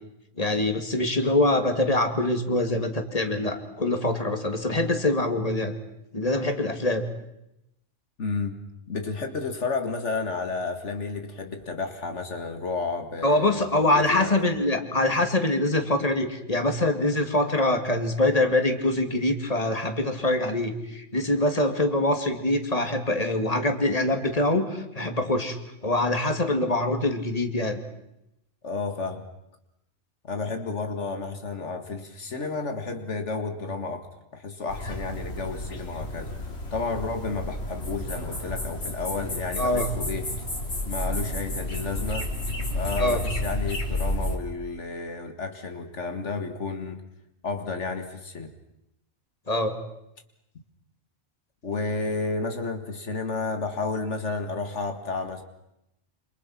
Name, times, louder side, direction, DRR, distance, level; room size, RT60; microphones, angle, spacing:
voice 1, 0.4-5.7 6.1-7.0 13.2-25.6 25.8-27.8 39.6-39.9 43.0-43.2 49.5-49.8, left 1 dB, 30° left, 5 dB, 2.8 m, -24 dB
voice 2, 8.2-8.6 8.9-14.5 28.6-29.2 30.2-36.3 36.7-40.3 40.9-42.3 42.7-47.0 47.4-48.5 51.6-55.4, left 4 dB, 80° left, 6 dB, 2.2 m, -31 dB
sound 1, 34.7-44.4, left 1 dB, 65° left, 3.7 m, -31 dB
28.0 x 27.5 x 6.0 m, 0.84 s
omnidirectional pair, 1.2 m